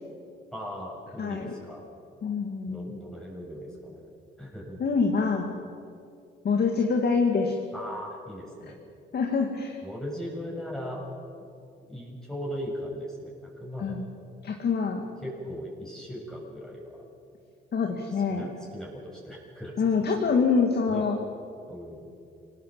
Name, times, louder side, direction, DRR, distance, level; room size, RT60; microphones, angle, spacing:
voice 1, 0.5-1.9 2.7-4.1 4.4-4.8 7.7-8.8 9.8-11.0 11.4-11.5 11.9-13.3 13.6-14.0 15.2-17.0 18.3-20.1 20.9-21.1 21.7-22.1, equal, 5° left, -3 dB, 6.8 m, -38 dB
voice 2, 1.2-1.5 2.2-3.0 4.8-5.6 6.4-7.6 9.1-9.8 13.8-14.0 14.4-15.0 17.7-18.5 19.8-21.2, left 5 dB, 55° left, 2 dB, 2.4 m, -25 dB
25.0 x 19.5 x 7.8 m, 2.4 s
cardioid pair, 90°, 20 cm